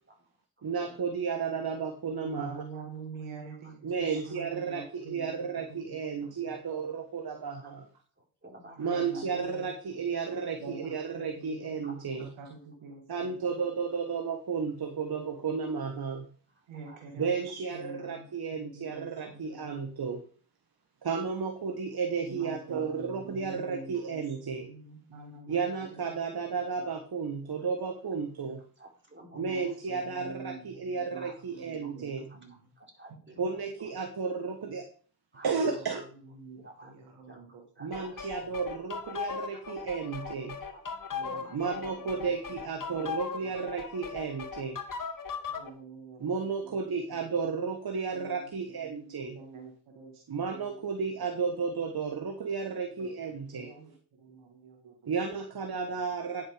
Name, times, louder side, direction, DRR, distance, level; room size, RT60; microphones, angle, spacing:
voice 1, 0.6-2.6 3.8-7.9 8.8-12.3 13.1-16.3 17.1-20.2 21.0-24.7 25.5-28.6 29.3-32.4 33.4-34.9 35.4-36.1 37.8-40.6 41.5-44.8 46.2-49.4 50.3-53.7 55.1-56.5, right 5 dB, 50° right, 6 dB, 1.4 m, -33 dB
voice 2, 2.2-5.5 5.9-6.6 8.7-9.7 10.6-13.5 16.7-19.8 22.3-25.6 25.9-26.2 29.3-30.7 30.9-31.3 31.7-32.5 33.1-33.2 35.6-35.7 36.3-37.6 38.1-38.6 41.1-42.1 42.9-43.1 43.4-43.5 45.5-46.8 47.3-47.4 48.1-48.5 48.7-50.8 52.9-54.9, right 4 dB, 90° right, 2 dB, 2.4 m, -47 dB
voice 3, 8.4-9.2 11.8-11.9 12.8-12.9 16.8-17.0 18.1-18.2 28.8-29.4 31.1-31.3 31.8-31.9 32.3-32.4 32.8-33.4 33.8-33.9 35.3-35.5 36.6-36.9 37.3-37.4 37.8-38.3 39.5-39.8 40.2-40.3 40.6-40.8 41.2-41.6, right 1 dB, 25° right, -1 dB, 4.4 m, -50 dB
sound 1, 37.9-45.7, left 6 dB, 45° left, 1.6 m, -38 dB
9.6 x 6.4 x 5.0 m, 0.43 s
supercardioid pair, 50°, 46 cm